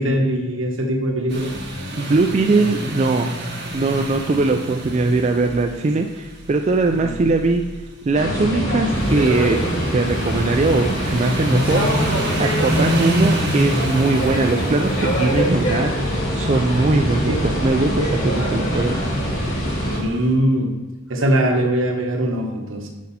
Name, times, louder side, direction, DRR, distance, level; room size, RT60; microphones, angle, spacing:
voice 1, 0.0-1.5 7.0-7.1 17.3-17.4 19.8-20.7 21.1-22.9, right 1 dB, 75° right, 2 dB, 1.2 m, -21 dB
sound 1, 1.3-20.2, equal, 55° right, 1.4 m, -28 dB
voice 2, 2.0-3.3 3.7-7.6 8.1-9.6 9.9-11.8 12.4-19.0, right 3 dB, 35° right, 4 dB, 0.3 m, -20 dB
sound 2, 8.1-20.0, equal, 70° left, 2.2 m, -23 dB
6.3 x 5.4 x 4.2 m, 1.2 s
head